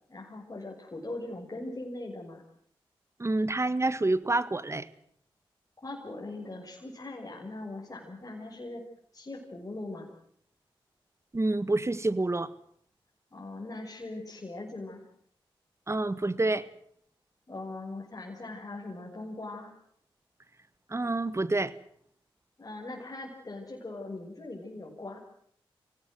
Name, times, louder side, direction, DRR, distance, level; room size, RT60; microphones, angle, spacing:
voice 1, 0.1-2.4 5.8-8.8 9.1-10.1 13.3-15.1 17.5-19.7 22.6-25.2, left 2 dB, 35° left, -3 dB, 6.5 m, -40 dB
voice 2, 3.2-4.9 11.3-12.5 15.9-16.7 20.9-21.7, right 2 dB, 30° right, 16 dB, 1.7 m, -28 dB
25.0 x 17.5 x 7.9 m, 0.65 s
cardioid pair, 50°, 10 cm